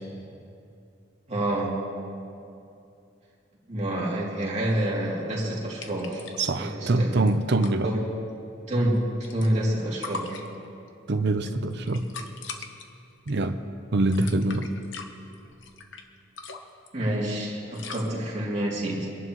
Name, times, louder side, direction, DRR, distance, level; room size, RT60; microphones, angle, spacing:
voice 1, 1.3-1.9 3.7-6.2 6.6-7.2 7.8-8.0 8.7-10.5 16.9-19.1, right 1 dB, 35° right, -5 dB, 2.9 m, -28 dB
sound 1, 5.8-6.6 6.8-6.9 7.1-7.7 8.8-9.7 10.0-10.9 11.4-12.8 13.3-13.5 14.0-16.0 16.4-16.9 17.7-18.1, left 4 dB, 70° left, 1.0 m, -40 dB
voice 2, 6.4-7.9 11.1-12.1 13.3-13.6 13.9-14.7, right 2 dB, 60° right, 8 dB, 0.7 m, -24 dB
25.0 x 11.0 x 3.1 m, 2.6 s
head